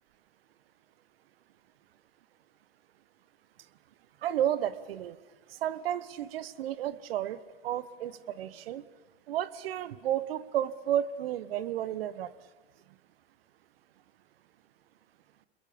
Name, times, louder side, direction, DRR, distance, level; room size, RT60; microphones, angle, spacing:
voice 1, 4.2-5.2 5.5-7.4 7.6-8.8 9.3-12.3, right 11 dB, 65° right, 16 dB, 1.5 m, -32 dB
28.5 x 21.5 x 8.7 m, 1.3 s
hypercardioid pair, 105°, 32 cm